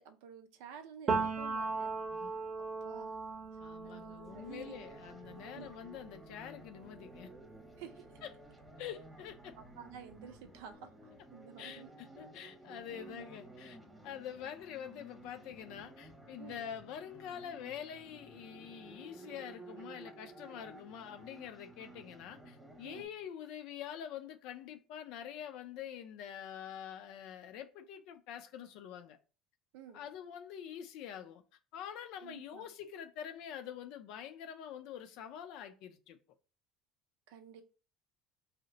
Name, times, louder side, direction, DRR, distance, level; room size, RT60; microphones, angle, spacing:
voice 1, 0.0-1.9 2.8-3.2 3.8-4.7 5.3-5.7 7.8-8.2 9.6-10.9 11.3-11.9 12.4-12.5 12.9-13.3 16.4-16.7 22.8-23.1 29.7-30.0 32.2-32.7 37.3-37.6, right 8 dB, 85° right, 0.5 m, -51 dB
Piano, 1.1-8.7 9.0-10.6, right 4 dB, 35° right, 0.7 m, -40 dB
voice 2, 3.6-7.3 8.2-8.3 8.8-9.5 11.6-13.8 14.0-29.2 29.9-31.4 31.7-36.2, left 9 dB, 70° left, 0.5 m, -46 dB
sound 1, 4.3-23.1, right 2 dB, 10° right, 1.0 m, -54 dB
2.7 x 2.1 x 3.8 m
supercardioid pair, 100°, 0 cm